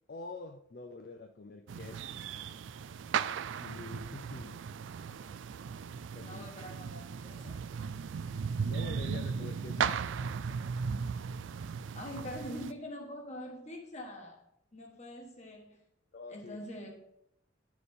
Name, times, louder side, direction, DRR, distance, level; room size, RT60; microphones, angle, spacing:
voice 1, 0.1-2.1 3.6-4.6 6.1-6.4 8.6-9.9 16.1-16.6, left 3 dB, 50° left, 6 dB, 0.5 m, -46 dB
sound 1, 1.7-12.7, right 6 dB, 75° right, 0.4 m, -37 dB
voice 2, 6.1-7.7 11.9-14.4 14.7-15.8 16.3-17.0, left 1 dB, 35° left, 1 dB, 1.6 m, -44 dB
9.8 x 6.2 x 3.7 m, 0.73 s
head